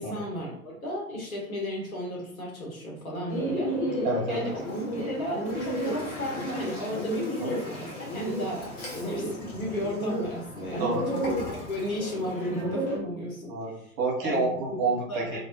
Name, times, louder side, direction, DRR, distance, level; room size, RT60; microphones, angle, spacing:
voice 1, 0.0-4.6 4.9-11.4 11.7-13.5 14.2-14.5 15.1-15.4, equal, 75° left, -2 dB, 1.1 m, -34 dB
Bird, 3.3-13.0, equal, 20° left, 0.4 m, -33 dB
voice 2, 4.0-4.5 10.8-11.2 13.5-15.4, right 3 dB, 40° right, 0 dB, 0.8 m, -28 dB
Toilet flush, 4.4-12.6, left 2 dB, 40° left, 0.9 m, -42 dB
2.2 x 2.1 x 2.7 m, 0.65 s
figure-of-eight pair, 90°, 42 cm